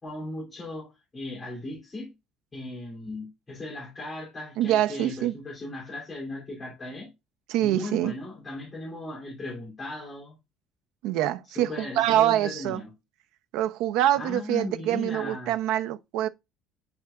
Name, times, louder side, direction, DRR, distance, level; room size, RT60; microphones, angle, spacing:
voice 1, 0.0-2.1 2.5-7.1 7.6-10.3 11.5-12.9 14.1-15.5, left 2 dB, 15° left, 3.0 m, -37 dB
voice 2, 4.6-5.4 7.5-8.1 11.0-12.8 13.5-16.3, right 13 dB, 70° right, 0.7 m, -25 dB
10.5 x 4.7 x 2.4 m
cardioid pair, 170°, 0 cm